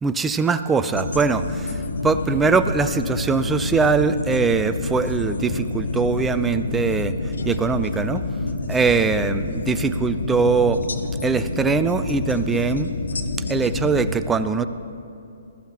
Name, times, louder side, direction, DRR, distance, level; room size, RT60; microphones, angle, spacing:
voice 1, 0.0-7.1 7.4-8.2 8.7-10.8 11.2-12.9 13.5-14.7, right 5 dB, 10° right, 11 dB, 0.5 m, -22 dB
sound 1, 0.9-14.1, left 2 dB, 70° left, 1.1 m, -28 dB
21.0 x 13.5 x 2.9 m, 2.7 s
figure-of-eight pair, 130°, 0 cm